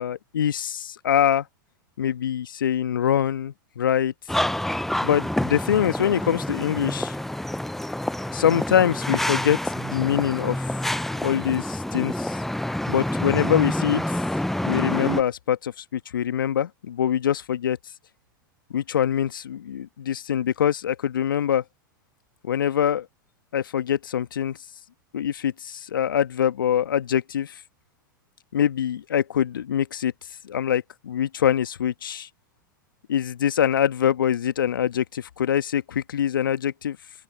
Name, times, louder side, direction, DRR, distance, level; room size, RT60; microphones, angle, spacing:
voice 1, 0.0-1.4 2.0-4.1 5.0-7.1 8.3-10.7 11.2-12.4 12.9-14.2 14.7-17.8 18.7-21.6 22.4-23.1 23.5-24.6 25.1-27.6 28.5-30.1 30.4-32.3 33.1-37.0, left 9 dB, 75° left, 1.3 m, -24 dB
sound 1, 4.3-15.2, left 1 dB, ahead, 0.5 m, -27 dB
open air
hypercardioid pair, 95°, 11 cm